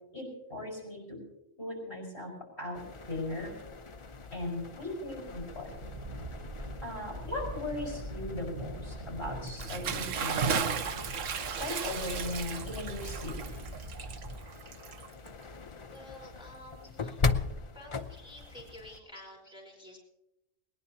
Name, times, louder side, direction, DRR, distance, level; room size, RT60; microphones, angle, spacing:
voice 1, 0.1-1.2 1.6-2.3 2.6-2.8 3.1-3.5 4.3-5.7 6.8-11.0 11.5-13.3 18.7-19.0 19.5-19.6, left 1 dB, 55° left, 1 dB, 5.6 m, -38 dB
sound 1, 2.7-19.0, left 4 dB, 35° left, 0.6 m, -40 dB
sound 2, 5.3-14.4, right 1 dB, 35° right, 1.5 m, -42 dB
Bathtub (filling or washing) / Splash splatter, 9.5-15.4, right 6 dB, 90° right, 1.2 m, -35 dB
voice 2, 15.9-17.2 17.7-20.0, left 1 dB, 5° right, -2 dB, 4.3 m, -50 dB
20.5 x 19.5 x 2.8 m, 0.89 s
omnidirectional pair, 1.3 m